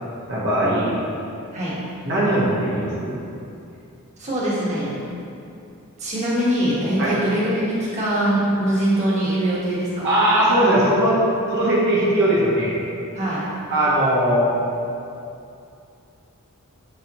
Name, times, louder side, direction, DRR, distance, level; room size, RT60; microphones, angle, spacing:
voice 1, 0.3-1.0 2.0-3.1 7.0-7.1 10.0-12.8 13.7-14.5, right 1 dB, 55° right, -8 dB, 1.4 m, -19 dB
voice 2, 4.2-5.0 6.0-10.1 13.1-13.4, right 1 dB, 30° right, -7 dB, 1.6 m, -22 dB
9.1 x 5.0 x 3.1 m, 2.6 s
head